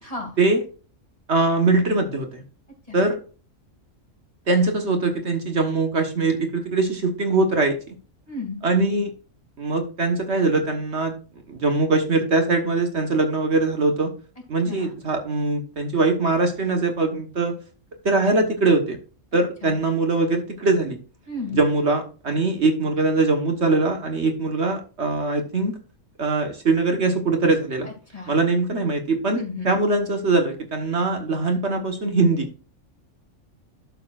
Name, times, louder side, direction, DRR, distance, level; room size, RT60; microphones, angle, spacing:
voice 1, 1.3-2.4 2.9-3.2 4.5-7.9 8.6-9.1 9.6-11.1 11.5-14.1 14.5-17.5 18.0-19.0 19.3-21.0 21.5-25.7 26.2-27.9 28.3-32.5, right 3 dB, 55° right, 5 dB, 1.6 m, -22 dB
voice 2, 8.3-8.6 14.7-14.8 19.6-19.8 21.3-21.6 28.1-28.3 29.3-29.8, left 3 dB, 25° left, 1 dB, 2.7 m, -32 dB
12.0 x 6.9 x 2.5 m, 0.36 s
omnidirectional pair, 1.4 m